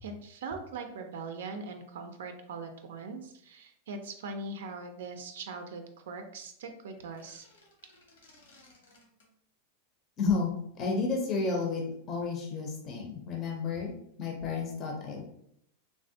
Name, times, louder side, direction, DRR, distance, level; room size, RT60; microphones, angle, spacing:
voice 1, 0.0-7.4, right 3 dB, 85° right, 6 dB, 0.4 m, -41 dB
sound 1, 7.0-9.3, left 2 dB, 90° left, 1.1 m, -60 dB
voice 2, 10.2-13.9 14.2-15.2, left 4 dB, 25° left, 1 dB, 0.5 m, -31 dB
3.4 x 2.1 x 2.6 m, 0.70 s
supercardioid pair, 155°, 0 cm